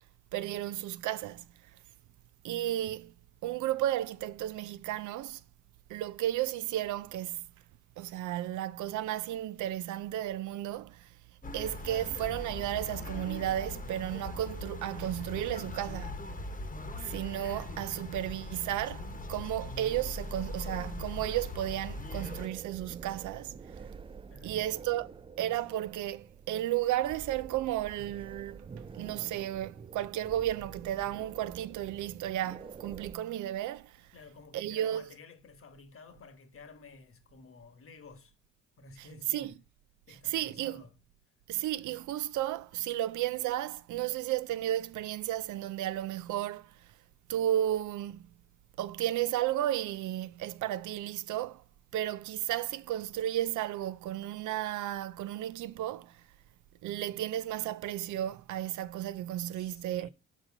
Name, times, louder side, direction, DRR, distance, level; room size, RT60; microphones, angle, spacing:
voice 1, 0.3-1.4 2.4-3.1 3.4-5.4 5.9-7.4 8.0-11.1 11.5-16.2 17.0-23.5 24.4-25.1 25.4-28.6 28.9-34.0 34.5-35.0 39.3-39.5 40.3-40.8 41.5-46.7 47.3-48.2 48.8-51.6 51.9-56.2 56.8-60.1, right 13 dB, 75° right, 0.5 m, -33 dB
sound 1, 11.4-22.5, left 2 dB, 30° left, 1.0 m, -40 dB
sound 2, 22.2-33.1, right 5 dB, 20° right, 0.3 m, -48 dB
voice 2, 24.3-24.7 34.1-38.3 38.8-39.6 40.1-41.0 59.5-60.1, left 4 dB, 45° left, 1.2 m, -53 dB
5.3 x 4.2 x 5.9 m
cardioid pair, 90°, 30 cm